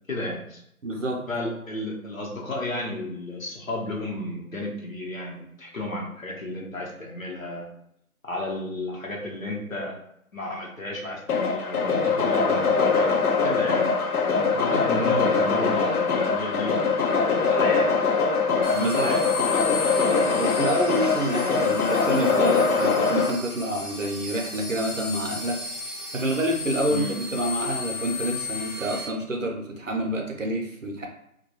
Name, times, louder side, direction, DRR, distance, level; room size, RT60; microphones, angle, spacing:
voice 1, 0.1-0.6 1.3-7.7 8.2-9.9 10.3-13.1 13.4-13.9 14.3-16.8 17.4-17.9 18.7-19.6 26.9-27.1, left 1 dB, 65° left, -2 dB, 0.8 m, -32 dB
voice 2, 0.8-1.3 18.8-19.1 20.1-25.6 26.1-31.1, right 1 dB, 60° right, 1 dB, 0.6 m, -27 dB
sound 1, 11.3-23.3, left 4 dB, 90° left, 0.6 m, -23 dB
sound 2, 18.6-29.1, left 3 dB, 35° left, 0.8 m, -35 dB
2.2 x 2.1 x 2.9 m, 0.75 s
figure-of-eight pair, 175°, 44 cm